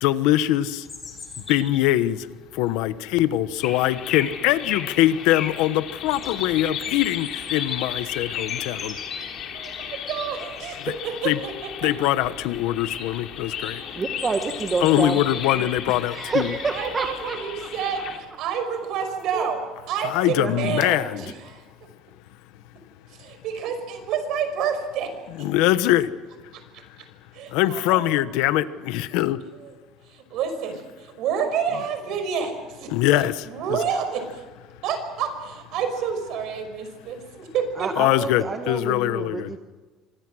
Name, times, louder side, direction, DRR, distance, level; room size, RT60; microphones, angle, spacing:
voice 1, 0.0-0.8 1.5-2.2 2.5-8.9 11.2-11.4 11.8-13.8 14.8-16.5 20.0-21.2 25.4-26.1 27.5-29.4 32.9-33.8 38.0-39.5, left 14 dB, 75° left, 13 dB, 1.2 m, -22 dB
Bird vocalization bird call bird song, 0.8-17.3, left 4 dB, 20° left, 4.4 m, -43 dB
sound 1, 3.6-18.2, left 8 dB, 45° left, 3.3 m, -34 dB
voice 2, 9.5-11.5 11.8-11.9 16.7-19.6 19.9-21.6 23.2-25.1 27.3-28.1 30.1-32.9 33.5-34.4 34.8-37.9, right 7 dB, 55° right, 7 dB, 5.5 m, -29 dB
voice 3, 13.9-15.2 15.5-15.6 16.0-17.7 19.3-19.5 20.4-21.1 37.8-39.6, right 4 dB, 20° right, 5 dB, 1.3 m, -29 dB
28.5 x 25.0 x 6.4 m, 1.3 s
cardioid pair, 175°, 0 cm